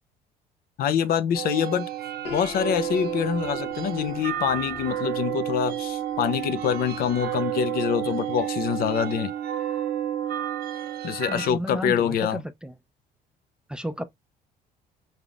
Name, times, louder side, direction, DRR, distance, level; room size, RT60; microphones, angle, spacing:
voice 1, 0.8-1.9 2.3-9.3 11.0-12.4, left 8 dB, 65° left, 0.5 m, -25 dB
sound 1, 1.3-11.5, right 12 dB, 65° right, 0.6 m, -31 dB
Piano, 2.2-8.1, left 6 dB, 80° left, 1.1 m, -42 dB
voice 2, 11.3-12.7 13.7-14.0, equal, 5° right, 0.4 m, -33 dB
3.9 x 3.4 x 2.4 m
cardioid pair, 110°, 17 cm